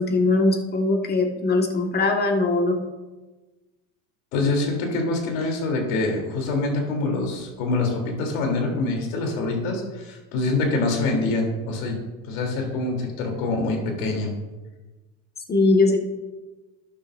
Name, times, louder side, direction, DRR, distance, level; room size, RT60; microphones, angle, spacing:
voice 1, 0.0-2.8 15.5-16.1, left 2 dB, 25° left, 3 dB, 1.6 m, -21 dB
voice 2, 4.3-12.0 12.2-14.3, left 2 dB, 70° left, 1 dB, 3.2 m, -25 dB
12.5 x 10.0 x 2.6 m, 1.2 s
hypercardioid pair, 95°, 42 cm